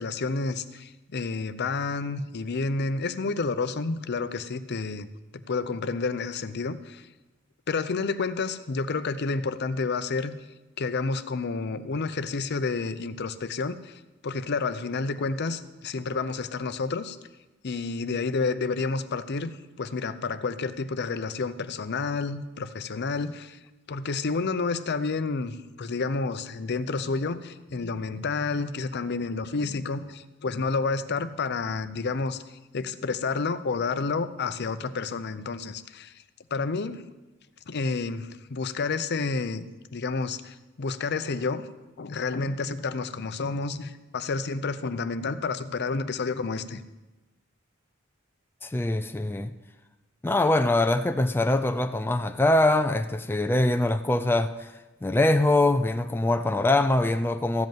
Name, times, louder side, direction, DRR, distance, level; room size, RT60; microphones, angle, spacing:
voice 1, 0.0-5.1 5.3-7.1 7.7-10.4 10.8-17.2 17.6-23.6 23.9-32.4 32.7-36.1 36.5-37.0 37.7-41.7 42.0-46.8, left 4 dB, 55° left, 0.6 m, -30 dB
voice 2, 48.6-49.5 50.2-57.7, left 2 dB, 10° left, 0.4 m, -23 dB
14.0 x 5.4 x 9.0 m
head